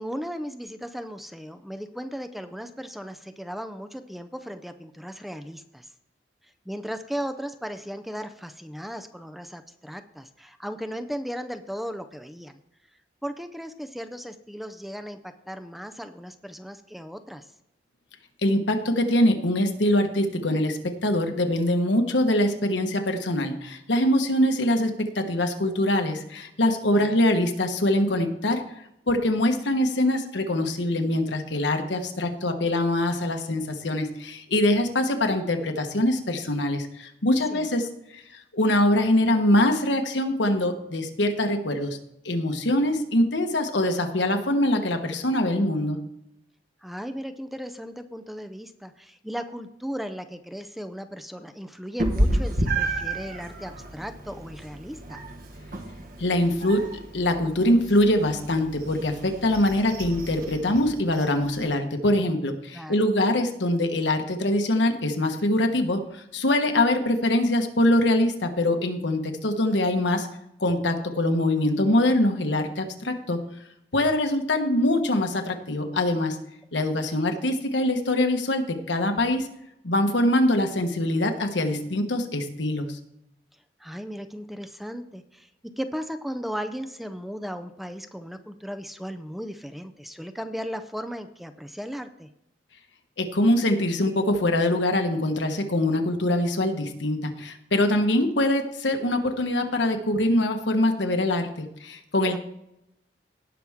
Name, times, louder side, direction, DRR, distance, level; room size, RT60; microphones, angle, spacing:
voice 1, 0.0-5.9 6.7-12.6 13.2-17.5 26.9-27.1 37.5-37.7 46.8-55.2 62.7-63.1 76.8-77.3 83.8-85.5 85.8-92.3 102.2-102.4, equal, ahead, 8 dB, 0.5 m, -36 dB
voice 2, 18.4-28.6 29.1-37.9 38.1-38.2 38.5-42.0 42.2-46.0 56.2-70.3 70.6-73.4 73.9-76.4 76.7-79.5 79.8-83.0 93.2-102.4, left 1 dB, 80° left, 6 dB, 1.3 m, -23 dB
Meow, 52.0-61.6, right 1 dB, 55° right, 1.5 m, -31 dB
17.5 x 6.0 x 3.6 m, 0.82 s
head